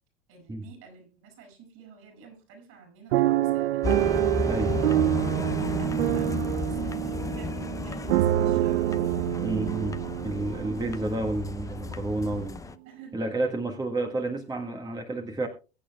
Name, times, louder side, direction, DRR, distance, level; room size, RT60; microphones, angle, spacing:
voice 1, 0.3-4.1 4.8-5.0 5.4-9.0 12.9-13.3, right 6 dB, 50° right, 4 dB, 7.5 m, -50 dB
sound 1, 3.1-11.2 11.8-11.9 12.2-12.4, right 14 dB, 75° right, 0.5 m, -26 dB
sound 2, 3.8-12.8, left 4 dB, 10° left, 0.6 m, -33 dB
voice 2, 9.4-10.0 10.2-12.6 13.1-15.5, right 2 dB, 15° right, 4 dB, 1.6 m, -30 dB
22.5 x 8.5 x 2.3 m, 0.32 s
hypercardioid pair, 95°, 31 cm